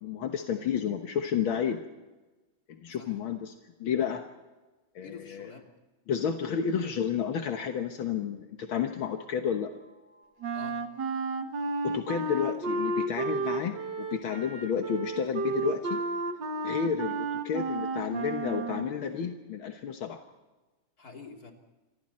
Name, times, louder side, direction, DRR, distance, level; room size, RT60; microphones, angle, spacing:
voice 1, 0.0-1.8 2.7-3.5 3.8-4.2 5.0-5.5 6.1-9.7 11.8-16.0 16.6-20.2, left 7 dB, 75° left, 4 dB, 2.1 m, -31 dB
voice 2, 5.0-5.7 10.5-10.8 21.0-21.5, left 4 dB, 45° left, 1 dB, 3.7 m, -47 dB
sound 1, 9.7-17.2, equal, 25° left, 7.6 m, -61 dB
Wind instrument woodwind instrument, 10.4-19.0, right 3 dB, 60° right, 2.1 m, -32 dB
28.5 x 25.0 x 4.3 m, 1.2 s
omnidirectional pair, 2.2 m